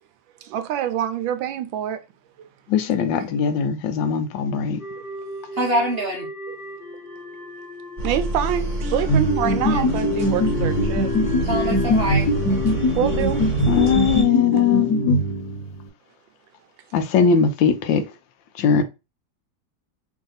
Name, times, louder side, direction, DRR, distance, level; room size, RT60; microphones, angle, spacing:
voice 1, 0.4-2.0 2.4-2.5 3.2-3.3 8.0-11.1 12.9-13.4 13.9-14.0, right 10 dB, 80° right, 1.3 m, -26 dB
voice 2, 2.7-4.8 13.7-15.2 16.9-18.0 18.6-18.8, left 7 dB, 80° left, 1.3 m, -20 dB
sound 1, 4.8-14.0, left 3 dB, 35° left, 0.9 m, -34 dB
voice 3, 5.5-6.3 9.7-9.8 11.4-12.3, right 1 dB, 50° right, 0.7 m, -24 dB
sound 2, 8.0-14.2, right 2 dB, 25° right, 1.7 m, -28 dB
sound 3, 9.1-15.8, left 1 dB, 60° left, 1.3 m, -22 dB
3.5 x 2.7 x 3.9 m
omnidirectional pair, 2.1 m